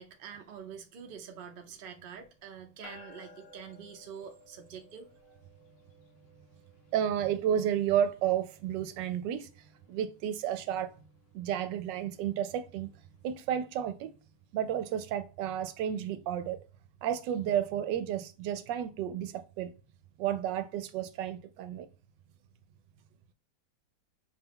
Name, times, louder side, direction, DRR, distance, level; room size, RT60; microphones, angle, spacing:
voice 1, 0.0-5.3, right 7 dB, 50° right, 0.7 m, -46 dB
sound 1, 2.8-14.4, left 2 dB, 55° left, 1.1 m, -59 dB
voice 2, 6.9-10.9 11.3-12.9 13.2-14.1 14.5-16.6 17.0-19.7 20.2-21.9, right 10 dB, 85° right, 1.2 m, -32 dB
5.6 x 2.3 x 3.4 m
omnidirectional pair, 1.9 m